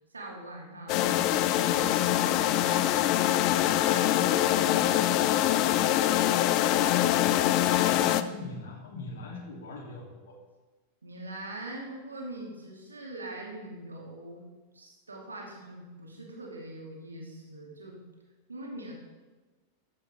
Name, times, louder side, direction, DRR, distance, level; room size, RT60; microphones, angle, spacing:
voice 1, 0.1-2.9 3.3-5.7 11.0-14.4 14.7-18.0 18.5-18.9, right 1 dB, 75° right, -1 dB, 3.0 m, -43 dB
sound 1, 0.9-8.2, left 13 dB, 40° left, 0.6 m, -24 dB
voice 2, 7.2-10.3, left 3 dB, 60° left, 0 dB, 3.2 m, -41 dB
13.5 x 11.0 x 3.7 m, 1.2 s
figure-of-eight pair, 90°, 0 cm